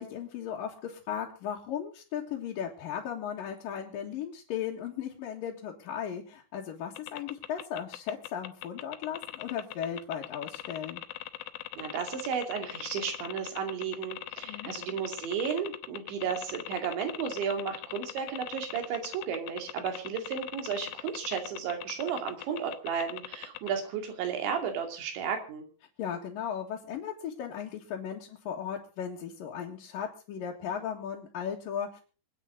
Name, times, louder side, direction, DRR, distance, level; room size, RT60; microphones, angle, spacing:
voice 1, 0.0-11.0 14.4-14.7 26.0-32.0, left 8 dB, 60° left, -2 dB, 3.0 m, -36 dB
sound 1, 6.9-23.7, left 15 dB, 80° left, 3.1 m, -40 dB
voice 2, 11.8-25.6, right 7 dB, 85° right, 5 dB, 5.0 m, -33 dB
26.0 x 9.2 x 3.8 m, 0.36 s
omnidirectional pair, 5.1 m